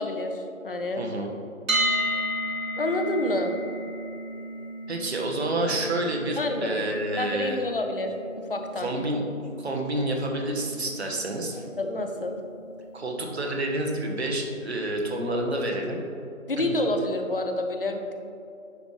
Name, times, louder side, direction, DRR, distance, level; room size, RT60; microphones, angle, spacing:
voice 1, 0.0-1.0 2.8-3.5 6.4-6.8 7.2-8.9 11.8-12.4 16.5-18.1, left 2 dB, 40° left, 4 dB, 0.7 m, -28 dB
voice 2, 1.0-1.3 4.9-7.6 8.8-9.2 9.6-11.6 12.9-16.0 16.6-16.7, right 1 dB, 50° right, 2 dB, 1.1 m, -29 dB
sound 1, 1.7-13.6, equal, 75° right, 1.3 m, -34 dB
10.0 x 5.2 x 3.2 m, 2.6 s
figure-of-eight pair, 160°, 41 cm